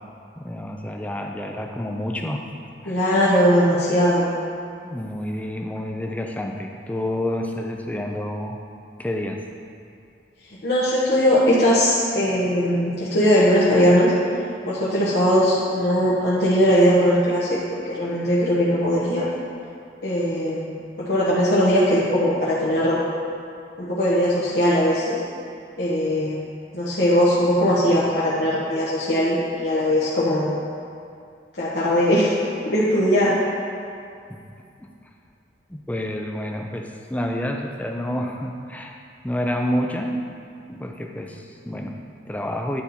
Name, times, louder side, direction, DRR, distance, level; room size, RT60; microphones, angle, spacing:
voice 1, 0.4-2.5 2.8-3.0 4.8-8.6 9.0-9.4 34.3-34.4 34.8-34.9 35.7-39.0 39.2-40.2 40.7-42.8, left 1 dB, 10° left, 2 dB, 0.5 m, -29 dB
voice 2, 2.9-4.3 10.6-14.1 14.7-19.3 20.0-23.0 23.8-25.2 25.8-26.5 26.7-30.6 31.5-32.3 32.6-33.4, equal, 70° left, -9 dB, 1.1 m, -20 dB
10.5 x 4.2 x 4.2 m, 2.4 s
head